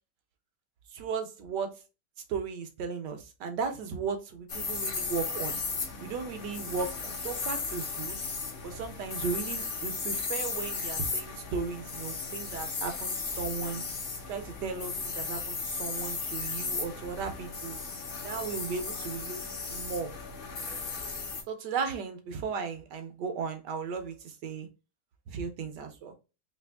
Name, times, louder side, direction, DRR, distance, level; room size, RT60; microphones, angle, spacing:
voice 1, 0.9-1.8 2.3-5.6 6.0-8.3 8.6-13.8 14.3-17.8 18.2-19.4 19.7-20.1 21.5-24.7 25.3-26.1, right 5 dB, 80° right, 1.5 m, -36 dB
sound 1, 4.5-21.4, left 4 dB, 45° left, 0.7 m, -35 dB
3.4 x 3.0 x 3.3 m
omnidirectional pair, 1.8 m